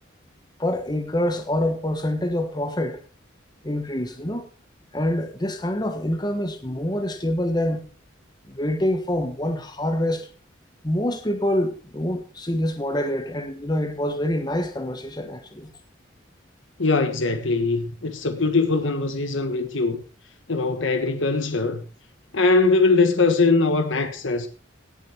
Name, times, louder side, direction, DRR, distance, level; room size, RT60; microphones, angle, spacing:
voice 1, 0.6-3.0 3.6-4.5 4.9-7.9 8.5-10.3 10.8-15.7, left 1 dB, 20° left, 1.4 m, -26 dB
voice 2, 16.8-20.0 20.5-21.8 22.3-24.5, left 3 dB, 75° left, 1.4 m, -21 dB
17.5 x 7.4 x 4.5 m
head